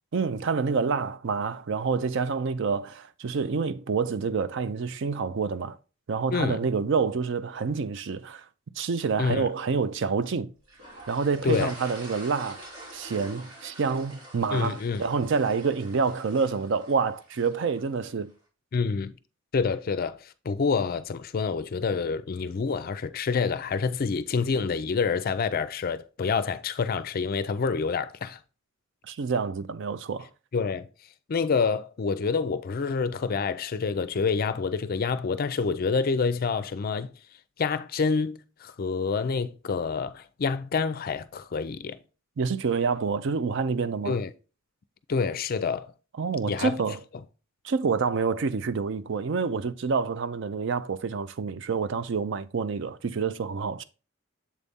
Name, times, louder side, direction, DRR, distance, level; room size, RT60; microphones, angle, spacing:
voice 1, 0.1-5.8 6.1-8.4 8.8-10.5 11.1-12.6 12.9-18.3 29.0-30.3 42.4-44.2 46.2-47.0 47.6-53.8, right 5 dB, 60° right, 0.4 m, -27 dB
sound 1, 10.7-18.0, right 1 dB, 85° right, 2.8 m, -46 dB
voice 2, 14.5-15.0 18.7-19.2 19.5-28.4 30.5-30.9 31.3-37.1 37.6-42.0 44.1-44.3 45.1-45.9 46.5-46.7, left 5 dB, 45° left, 0.4 m, -27 dB
7.3 x 4.0 x 3.5 m
head